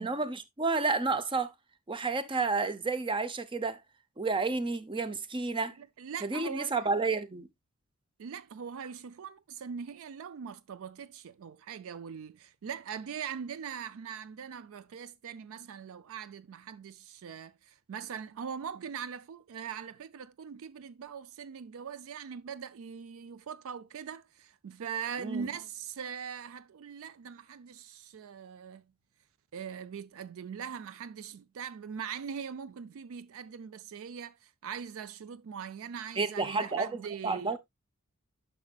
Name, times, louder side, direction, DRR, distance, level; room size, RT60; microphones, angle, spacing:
voice 1, 0.0-1.5 1.9-3.8 4.2-5.7 6.2-7.5 25.2-25.5 36.2-37.6, right 3 dB, 20° right, 0.6 m, -31 dB
voice 2, 5.8-6.9 8.2-28.8 29.5-37.6, right 7 dB, 65° right, 0.4 m, -41 dB
10.5 x 6.2 x 2.3 m
head